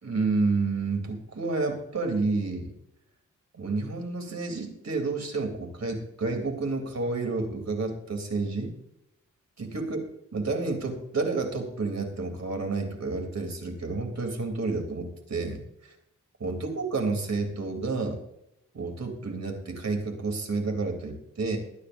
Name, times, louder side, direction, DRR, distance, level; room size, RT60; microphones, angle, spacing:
voice 1, 0.0-2.7 3.5-8.7 9.6-10.0 10.3-15.9 16.4-18.2 18.7-21.6, right 3 dB, 55° right, 3 dB, 3.3 m, -30 dB
23.0 x 9.9 x 2.7 m, 0.81 s
cardioid pair, 70°, 32 cm